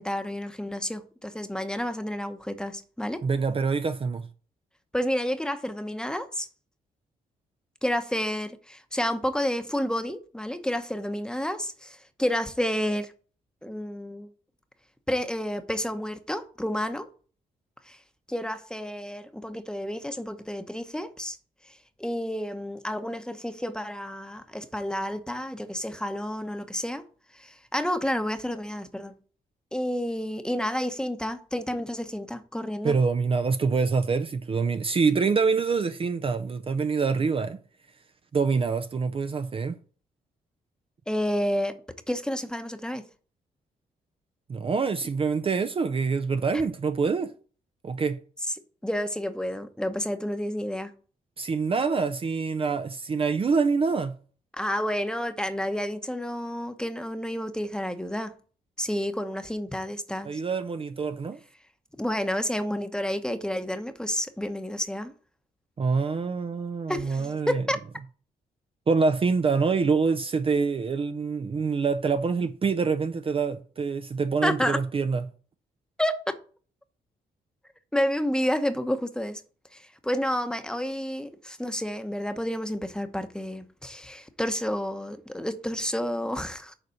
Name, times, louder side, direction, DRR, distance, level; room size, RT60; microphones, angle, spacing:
voice 1, 0.0-3.2 4.9-6.5 7.8-13.1 13.6-14.3 15.1-17.1 17.9-18.0 18.3-21.4 21.6-27.0 27.3-29.1 29.7-32.9 41.1-41.8 42.1-43.0 48.8-50.9 54.6-58.3 58.8-60.4 62.0-65.1 66.9-67.8 74.4-74.8 76.0-76.3 77.9-79.4 79.7-86.7, equal, 5° left, 0.9 m, -30 dB
voice 2, 3.2-4.3 32.8-37.6 38.3-39.7 44.5-47.3 47.8-48.2 51.4-54.2 60.2-61.4 65.8-67.6 68.9-75.2, right 5 dB, 35° right, 0.5 m, -25 dB
6.9 x 4.2 x 6.3 m
cardioid pair, 85°, 16 cm